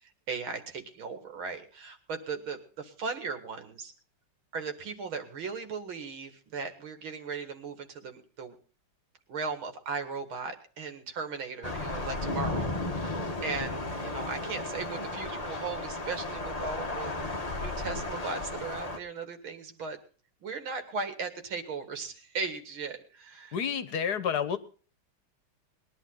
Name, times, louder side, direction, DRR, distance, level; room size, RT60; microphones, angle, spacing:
voice 1, 0.0-3.9 4.5-8.6 9.3-12.7 13.4-20.0 20.4-23.6, right 4 dB, 85° right, 7 dB, 2.7 m, -37 dB
Thunder / Rain, 11.6-19.0, left 2 dB, 25° left, 1.1 m, -34 dB
voice 2, 23.5-24.6, left 7 dB, 55° left, 13 dB, 1.6 m, -29 dB
20.5 x 11.0 x 3.9 m, 0.38 s
omnidirectional pair, 2.2 m